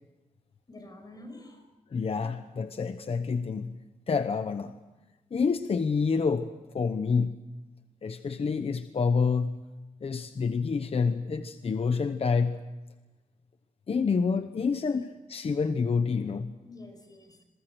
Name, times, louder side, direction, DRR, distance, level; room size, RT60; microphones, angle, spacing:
voice 1, 0.7-1.6 16.6-17.4, left 2 dB, 25° left, 6 dB, 5.7 m, -47 dB
voice 2, 1.9-3.7 4.1-4.7 5.3-6.5 6.7-7.4 8.0-9.6 10.0-12.6 13.9-16.5, left 5 dB, 45° left, 9 dB, 1.0 m, -28 dB
28.0 x 23.0 x 6.2 m, 1.1 s
wide cardioid pair, 165°, 14 cm